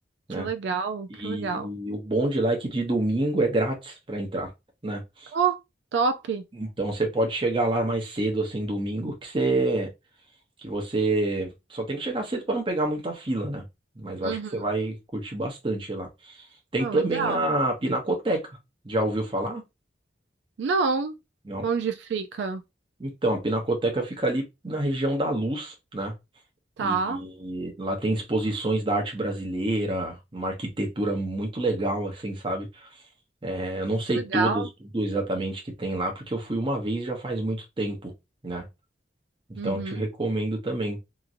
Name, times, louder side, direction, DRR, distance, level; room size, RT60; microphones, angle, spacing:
voice 1, 0.4-1.7 5.3-5.6 5.9-6.4 14.2-14.6 16.8-17.4 20.6-21.1 21.6-22.6 26.8-27.2 34.1-34.7 39.6-40.1, right 5 dB, 75° right, 0.3 m, -27 dB
voice 2, 1.1-4.5 4.8-5.3 6.6-9.9 10.6-13.6 14.0-16.4 16.7-18.5 18.8-19.6 21.5-21.7 23.0-26.1 26.8-32.9 33.4-34.7 34.9-38.1 38.4-38.7 39.6-41.0, right 2 dB, 30° right, 0.7 m, -27 dB
2.9 x 2.5 x 2.5 m
head